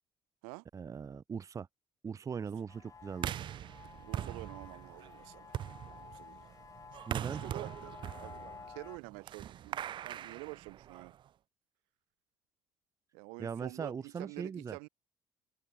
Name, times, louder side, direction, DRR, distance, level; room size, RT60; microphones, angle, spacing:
voice 1, 0.7-1.7 2.0-3.4 7.1-7.4 13.4-14.8, right 6 dB, 35° right, 0.8 m, -40 dB
sound 1, 2.7-9.0, left 5 dB, 35° left, 3.0 m, -52 dB
sound 2, 3.1-11.3, right 11 dB, 60° right, 1.8 m, -42 dB
voice 2, 3.9-6.4 7.2-11.1 13.1-14.9, right 38 dB, 85° right, 2.2 m, -49 dB
open air
supercardioid pair, 65°, 9 cm